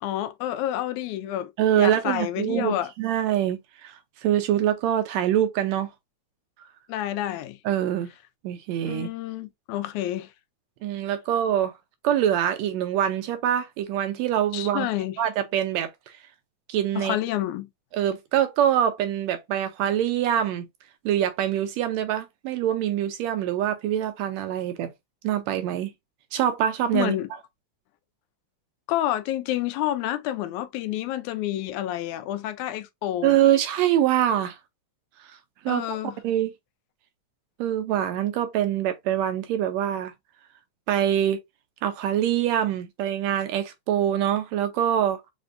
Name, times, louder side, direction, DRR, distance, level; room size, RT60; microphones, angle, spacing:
voice 1, 0.0-1.5 1.8-2.9 6.9-7.6 8.9-10.3 14.5-15.2 17.0-17.7 26.9-27.3 28.9-33.4 35.7-36.2, left 13 dB, 90° left, 2.0 m, -29 dB
voice 2, 1.6-5.9 7.7-8.1 8.4-9.1 10.8-11.7 12.0-14.9 15.2-16.2 16.7-17.2 17.9-20.7 21.1-24.9 25.2-25.9 26.3-27.2 33.2-34.6 35.7-36.0 36.2-36.5 37.6-40.1 40.9-41.4 41.8-45.2, right 11 dB, 80° right, 1.7 m, -24 dB
5.2 x 2.6 x 2.5 m
omnidirectional pair, 3.4 m